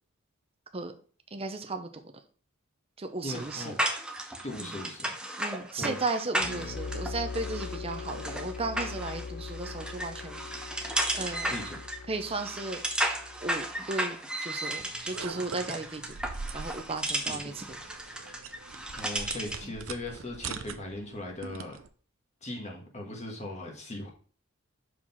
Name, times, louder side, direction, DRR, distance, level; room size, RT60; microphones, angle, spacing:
voice 1, 1.3-1.9 3.0-3.8 4.6-4.7 5.4-10.7 11.1-11.5 12.1-12.8 13.4-14.2 14.4-16.1 16.5-17.8 19.6-19.7, right 3 dB, 25° right, 6 dB, 0.8 m, -35 dB
voice 2, 3.2-3.8 4.4-5.1 5.8-5.9 11.4-11.8 17.3-17.4 18.9-21.8 22.4-24.1, left 1 dB, 30° left, 0 dB, 1.5 m, -39 dB
sound 1, 3.3-19.7, right 1 dB, 5° right, 0.9 m, -35 dB
sound 2, 6.4-13.9, left 4 dB, 55° left, 0.5 m, -41 dB
sound 3, 14.8-21.9, right 5 dB, 75° right, 0.7 m, -43 dB
5.8 x 5.0 x 5.7 m, 0.41 s
head